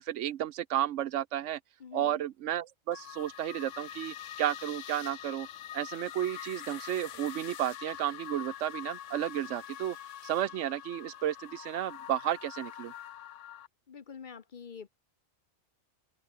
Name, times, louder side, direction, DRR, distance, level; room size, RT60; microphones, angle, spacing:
voice 1, 0.0-1.6 1.9-10.0 10.2-12.9, right 12 dB, 85° right, 1.0 m, -33 dB
voice 2, 1.8-2.2 13.9-14.9, left 6 dB, 45° left, 0.9 m, -46 dB
sound 1, 2.9-13.7, left 11 dB, 85° left, 1.1 m, -44 dB
sound 2, 10.5-12.0, equal, 5° left, 4.8 m, -71 dB
omnidirectional pair, 1.2 m